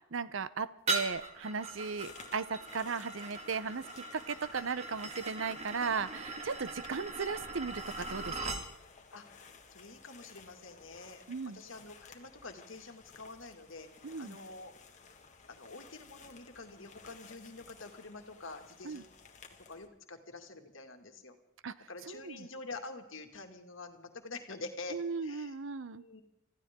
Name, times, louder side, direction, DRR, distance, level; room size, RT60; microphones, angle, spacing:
voice 1, 0.1-8.6 11.3-11.6 14.0-14.4 18.8-19.0 21.6-22.5 24.9-26.0, right 5 dB, 65° right, 16 dB, 0.8 m, -37 dB
sound 1, 0.9-8.7, right 3 dB, 35° right, 2.0 m, -40 dB
sound 2, 1.6-19.9, left 5 dB, 35° left, 1.8 m, -56 dB
voice 2, 9.1-13.9 14.2-14.7 15.5-19.1 19.7-21.4 21.9-25.6 25.9-26.2, left 3 dB, 65° left, 5 dB, 2.2 m, -47 dB
26.0 x 15.0 x 3.7 m, 0.91 s
head